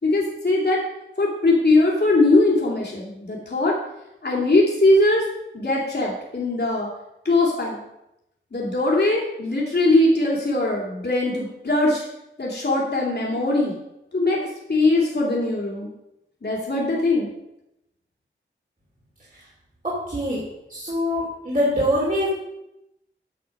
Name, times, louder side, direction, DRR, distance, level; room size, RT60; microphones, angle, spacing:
voice 1, 0.0-0.8 1.2-3.7 4.2-5.2 5.5-6.9 7.2-7.8 8.5-12.0 12.4-13.8 14.1-14.4 14.7-15.9 16.4-17.3, left 2 dB, 55° left, -3 dB, 2.8 m, -20 dB
voice 2, 20.1-20.4 20.7-22.3, equal, 40° right, -6 dB, 3.4 m, -24 dB
10.5 x 6.2 x 5.4 m, 0.88 s
cardioid pair, 45°, 21 cm